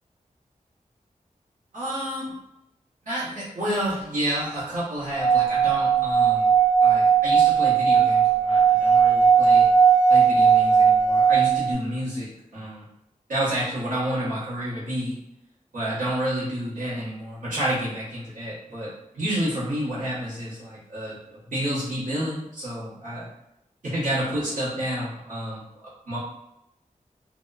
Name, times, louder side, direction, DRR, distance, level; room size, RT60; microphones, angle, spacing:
voice 1, 1.7-2.3 3.0-6.5 6.8-9.7 10.1-12.8 13.3-15.2 15.7-23.3 23.8-25.6 26.1-26.2, right 1 dB, 80° right, -11 dB, 1.0 m, -29 dB
Singing / Glass, 5.1-11.7, right 6 dB, 10° right, 1.1 m, -18 dB
2.7 x 2.1 x 2.2 m, 0.86 s
wide cardioid pair, 95°, 14 cm